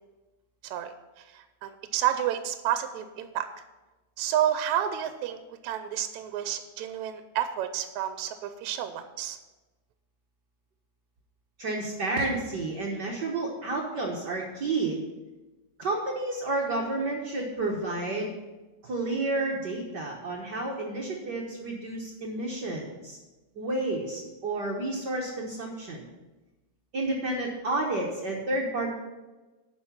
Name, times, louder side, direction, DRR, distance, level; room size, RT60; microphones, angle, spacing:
voice 1, 1.2-3.5 4.2-5.4 5.6-9.4, right 11 dB, 75° right, 9 dB, 1.8 m, -30 dB
voice 2, 11.6-15.0 15.8-18.3 18.8-23.2 23.6-26.0 26.9-28.9, right 2 dB, 60° right, -1 dB, 1.1 m, -30 dB
9.5 x 6.0 x 7.1 m, 1.1 s
omnidirectional pair, 3.5 m